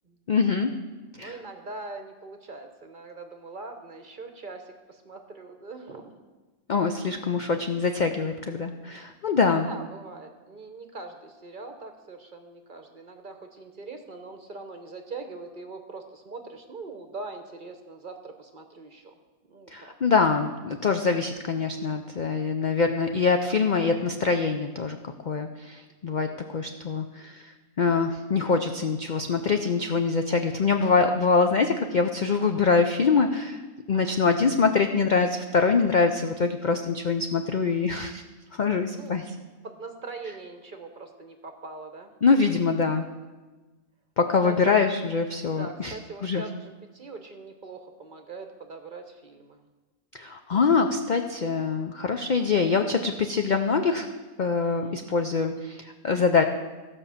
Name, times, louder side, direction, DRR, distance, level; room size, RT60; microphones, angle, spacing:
voice 1, 0.3-0.7 1.2-1.3 6.7-9.7 19.7-25.0 25.2-27.5 27.8-33.6 33.9-38.2 38.5-39.2 42.2-43.1 44.2-45.9 46.2-46.4 50.1-54.1 54.4-56.4, left 4 dB, 55° left, 6 dB, 0.5 m, -24 dB
voice 2, 1.2-6.2 9.6-19.2 19.5-19.9 26.2-26.7 32.4-32.7 33.9-34.2 38.9-39.2 39.6-42.1 44.4-44.8 45.5-49.6 50.5-50.7 54.6-55.0, right 3 dB, 40° right, 6 dB, 0.9 m, -42 dB
15.0 x 5.4 x 7.0 m, 1.3 s
omnidirectional pair, 1.5 m